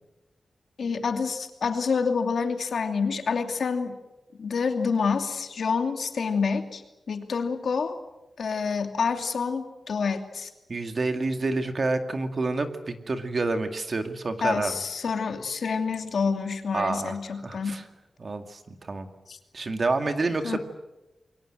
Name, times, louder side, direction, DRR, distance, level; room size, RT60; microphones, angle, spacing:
voice 1, 0.8-4.0 4.4-6.8 7.1-8.0 8.4-10.5 14.4-17.7 19.3-19.4 20.4-20.6, left 5 dB, 65° left, 6 dB, 2.7 m, -27 dB
voice 2, 10.7-14.7 16.7-17.2 17.4-17.8 18.2-19.1 19.5-20.6, right 3 dB, 40° right, 7 dB, 2.2 m, -28 dB
28.5 x 23.0 x 7.7 m, 0.99 s
wide cardioid pair, 165°, 0 cm